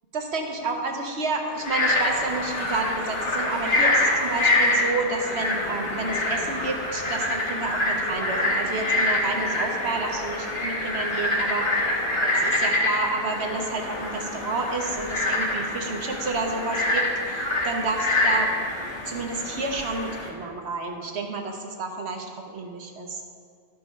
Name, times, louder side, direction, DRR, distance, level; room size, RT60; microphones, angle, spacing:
voice 1, 0.1-18.5 19.1-23.2, right 3 dB, 85° right, 2 dB, 1.3 m, -30 dB
Frog, 1.5-20.3, left 1 dB, 55° left, 1.7 m, -26 dB
12.0 x 5.4 x 5.4 m, 2.1 s
omnidirectional pair, 1.1 m